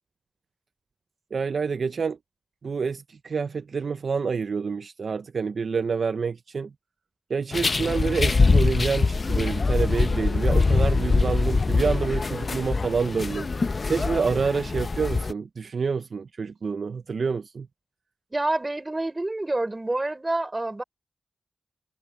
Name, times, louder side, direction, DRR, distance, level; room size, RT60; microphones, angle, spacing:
voice 1, 1.3-2.2 2.6-6.7 7.3-13.5 13.9-17.7, right 5 dB, 60° right, 0.4 m, -27 dB
sound 1, 7.5-15.3, left 4 dB, 40° left, 0.5 m, -23 dB
voice 2, 18.3-20.8, right 2 dB, 20° right, 4.8 m, -27 dB
wide cardioid pair, 170°, 0 cm